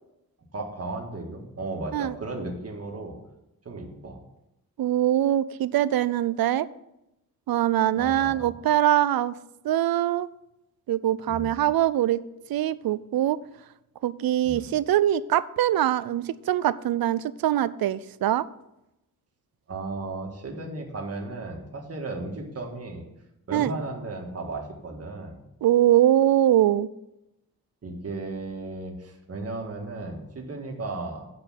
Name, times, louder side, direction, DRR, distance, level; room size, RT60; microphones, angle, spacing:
voice 1, 0.5-3.2 3.7-4.2 8.0-8.5 11.3-11.5 14.4-14.6 19.7-23.0 23.5-25.4 27.8-31.2, right 2 dB, 45° right, 1 dB, 1.8 m, -35 dB
voice 2, 4.8-6.7 7.5-9.3 9.6-10.3 10.9-12.2 12.5-13.4 14.0-18.5 23.5-23.7 25.6-26.9, right 12 dB, 80° right, 17 dB, 0.5 m, -23 dB
8.5 x 5.2 x 7.4 m, 0.88 s
wide cardioid pair, 120°, 35 cm